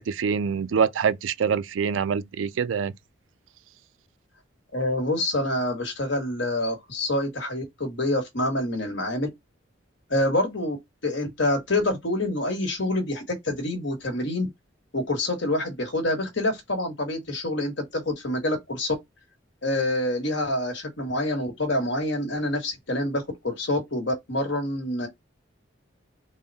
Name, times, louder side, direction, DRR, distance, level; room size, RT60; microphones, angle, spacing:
voice 1, 0.0-2.9, right 6 dB, 80° right, 0.4 m, -25 dB
voice 2, 4.7-9.3 10.1-10.8 11.0-14.5 14.9-18.9 19.6-25.1, left 1 dB, 65° left, 1.4 m, -27 dB
3.6 x 2.2 x 4.0 m
head